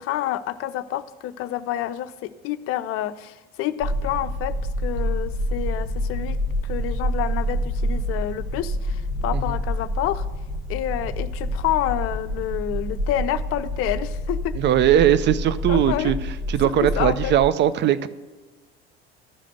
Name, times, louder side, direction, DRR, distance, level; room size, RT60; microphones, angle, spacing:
voice 1, 0.0-4.6 4.8-6.4 6.6-10.2 10.7-14.6 15.7-16.1 17.0-17.3, left 13 dB, 45° left, 13 dB, 0.6 m, -28 dB
sound 1, 3.8-17.5, equal, 60° right, 1.2 m, -27 dB
voice 2, 14.6-16.2 16.5-18.1, right 10 dB, 35° right, 15 dB, 0.6 m, -19 dB
12.5 x 5.0 x 6.4 m, 1.3 s
figure-of-eight pair, 65°, 32 cm